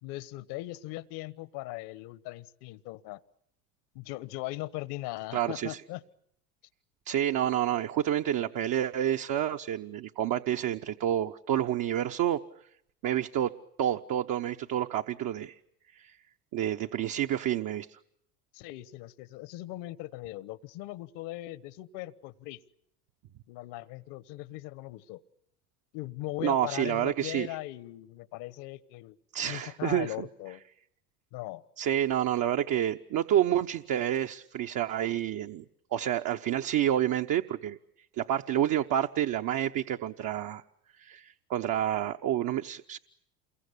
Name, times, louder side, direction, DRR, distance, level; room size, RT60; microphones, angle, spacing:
voice 1, 0.0-3.2 3.9-6.0 18.5-22.6 23.5-25.2 25.9-29.2 29.5-30.6 31.3-31.6, left 17 dB, 65° left, 16 dB, 1.3 m, -39 dB
voice 2, 5.3-5.8 7.1-12.4 13.0-13.5 13.8-15.6 16.0-16.2 16.5-18.0 26.4-27.5 29.3-30.3 31.8-35.6 35.9-37.8 38.2-40.6 41.0-43.0, right 11 dB, 45° right, 5 dB, 1.0 m, -29 dB
28.5 x 23.0 x 8.3 m, 0.74 s
hypercardioid pair, 80°, 45 cm